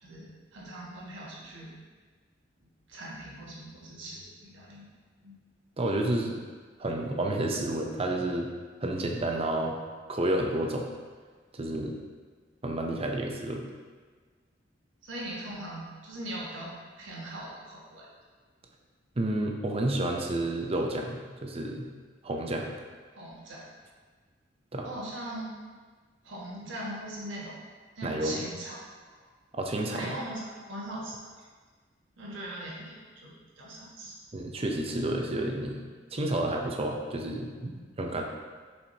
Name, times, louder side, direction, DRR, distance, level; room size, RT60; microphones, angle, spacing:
voice 1, 0.0-1.7 2.9-4.9 5.2-5.3 15.0-18.1 23.1-23.6 24.8-25.5 26.2-27.6 28.0-28.8 29.0-29.3 29.9-31.3 32.2-34.1, right 1 dB, 80° right, -4 dB, 1.4 m, -40 dB
voice 2, 5.8-6.4 6.8-8.5 8.8-9.8 10.1-10.9 11.5-11.9 12.6-13.7 19.2-21.9 22.2-22.7 24.7-24.9 28.0-28.4 29.5-30.2 34.3-35.8 36.1-38.2, right 1 dB, 30° right, 1 dB, 0.6 m, -30 dB
7.1 x 4.8 x 2.8 m, 1.5 s
head